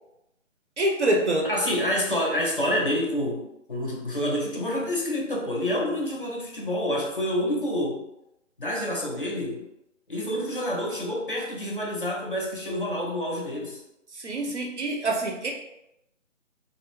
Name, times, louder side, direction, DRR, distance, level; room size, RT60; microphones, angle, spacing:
voice 1, 0.8-1.5 14.1-15.5, right 1 dB, 60° right, 1 dB, 0.5 m, -25 dB
voice 2, 1.4-8.0 8.6-9.6 10.1-13.8, left 1 dB, 45° left, -2 dB, 0.5 m, -28 dB
2.3 x 2.0 x 3.0 m, 0.87 s
figure-of-eight pair, 180°, 39 cm